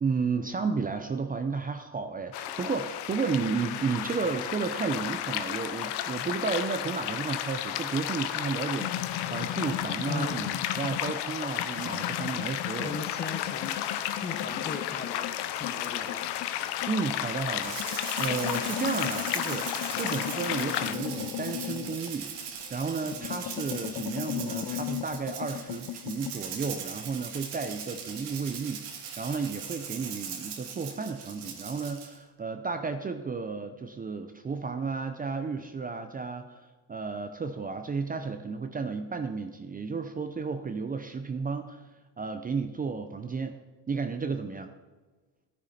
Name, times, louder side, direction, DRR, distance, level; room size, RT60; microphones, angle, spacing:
voice 1, 0.0-13.0 16.9-22.3 22.7-41.8 42.2-43.6 43.9-44.7, right 4 dB, 20° right, 7 dB, 0.7 m, -33 dB
sound 1, 2.3-20.9, left 11 dB, 80° left, 1.0 m, -33 dB
sound 2, 8.8-11.3 11.6-17.2 17.7-22.7 23.0-26.4, left 14 dB, 50° left, 0.6 m, -37 dB
voice 2, 10.1-10.8 12.8-13.8 14.2-16.3 23.0-23.3, left 3 dB, 25° left, 8 dB, 1.2 m, -38 dB
Rattle (instrument), 17.6-32.2, right 7 dB, 75° right, 2.3 m, -40 dB
13.0 x 10.0 x 4.2 m, 1.3 s
cardioid pair, 115°, 40 cm